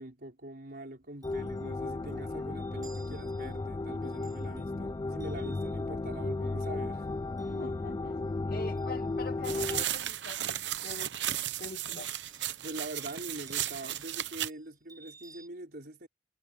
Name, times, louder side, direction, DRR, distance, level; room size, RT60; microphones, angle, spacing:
voice 1, 0.0-7.2 12.6-16.1, right 1 dB, 60° right, 4.3 m, -44 dB
Chime, 1.0-9.5 9.8-11.2 12.0-15.5, right 4 dB, 20° right, 5.7 m, -60 dB
sound 1, 1.2-9.8, left 2 dB, 25° left, 0.3 m, -34 dB
voice 2, 7.4-11.1 11.6-12.1, left 3 dB, 55° left, 2.2 m, -44 dB
sound 2, 9.4-14.5, right 12 dB, 80° right, 0.9 m, -35 dB
head